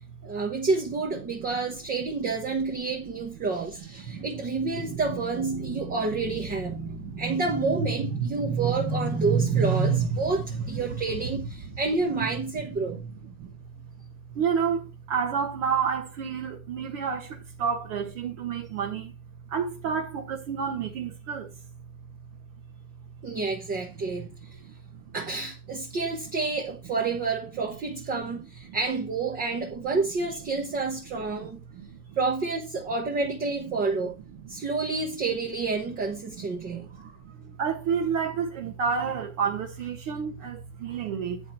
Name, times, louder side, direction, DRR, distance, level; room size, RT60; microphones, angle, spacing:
voice 1, 0.2-13.1 23.2-24.3 25.1-31.6 32.2-34.1 34.5-37.2, right 4 dB, 20° right, 1.0 m, -28 dB
voice 2, 6.8-7.2 8.4-8.6 12.8-13.0 13.4-13.5 14.3-19.1 19.5-21.5 24.6-25.1 28.7-28.8 31.4-31.5 31.7-32.2 34.6-34.7 36.4-37.1 37.4-41.4, right 6 dB, 50° right, 1.4 m, -30 dB
9.7 x 4.5 x 5.4 m
supercardioid pair, 175°, 43 cm